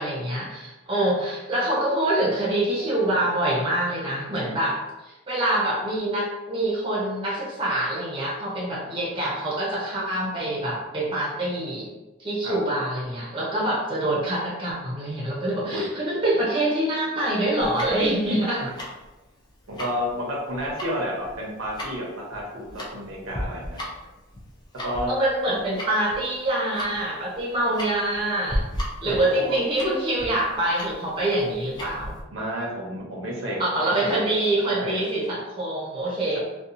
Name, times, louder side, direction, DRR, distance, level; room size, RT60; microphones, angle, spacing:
voice 1, 0.0-11.9 12.2-18.7 25.1-28.6 29.0-32.1 33.6-36.4, right 1 dB, 25° right, -6 dB, 0.7 m, -25 dB
Tick-tock, 17.6-32.2, equal, 20° left, 0.5 m, -36 dB
voice 2, 19.8-23.8 24.8-25.1 29.3-29.6 32.3-34.3 34.6-35.0, equal, 75° right, -3 dB, 0.7 m, -31 dB
2.7 x 2.3 x 2.5 m, 1.1 s
head